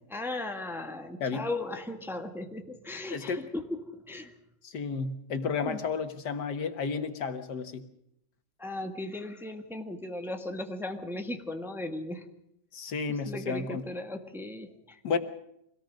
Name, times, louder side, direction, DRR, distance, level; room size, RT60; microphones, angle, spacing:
voice 1, 0.1-3.7 3.9-4.3 5.6-5.8 8.6-12.3 13.3-15.0, left 2 dB, ahead, 5 dB, 1.3 m, -37 dB
voice 2, 3.1-3.4 4.6-7.8 12.7-13.8 15.0-15.2, left 5 dB, 75° left, 9 dB, 1.9 m, -32 dB
24.5 x 17.5 x 6.4 m, 0.77 s
omnidirectional pair, 1.8 m